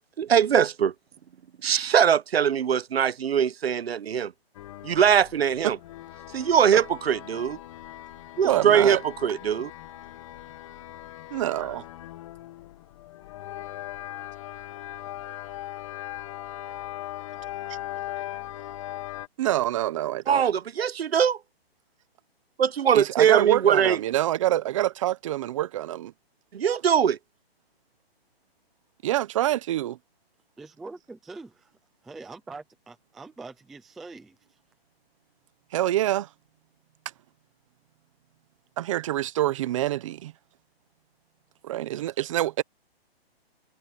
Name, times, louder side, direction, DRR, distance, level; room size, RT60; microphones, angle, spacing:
voice 1, 0.2-0.9 1.6-4.3 4.8-5.8 6.3-7.6 8.4-9.7 20.3-21.4 22.6-24.0 26.5-27.2, right 8 dB, 70° right, 1.3 m, -22 dB
sound 1, 4.5-19.3, left 14 dB, 30° left, 1.3 m, -39 dB
voice 2, 8.4-9.0 11.3-11.8 19.4-20.4 22.9-26.1 29.0-30.0 35.7-36.3 38.8-40.3 41.6-42.6, right 14 dB, 30° right, 1.0 m, -26 dB
voice 3, 30.6-31.7 32.0-34.4 41.7-42.0, right 3 dB, ahead, 0.4 m, -44 dB
hypercardioid pair, 160°, 31 cm